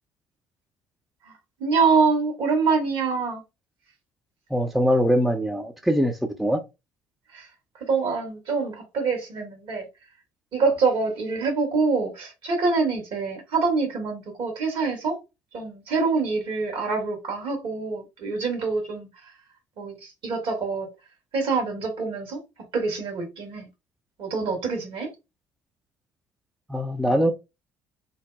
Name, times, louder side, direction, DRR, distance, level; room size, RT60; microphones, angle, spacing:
voice 1, 1.6-3.4 7.3-7.5 7.7-9.9 10.5-15.2 15.5-19.3 19.8-20.9 21.3-22.4 22.7-23.7 24.2-25.1, right 4 dB, 55° right, 1.2 m, -25 dB
voice 2, 4.5-6.6 26.7-27.3, equal, ahead, 0.4 m, -22 dB
2.6 x 2.1 x 2.3 m
figure-of-eight pair, 55°, 10 cm